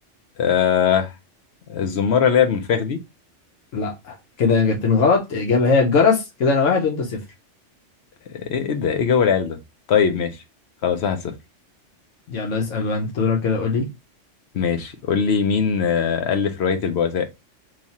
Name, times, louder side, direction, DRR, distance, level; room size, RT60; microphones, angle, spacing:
voice 1, 0.4-1.1 1.7-3.0 8.3-9.6 9.9-10.4 10.8-11.3 14.5-17.3, left 7 dB, 65° left, 0.9 m, -20 dB
voice 2, 3.7-7.2 12.3-13.9, left 4 dB, 85° left, 1.1 m, -20 dB
3.1 x 2.4 x 4.0 m
omnidirectional pair, 1.3 m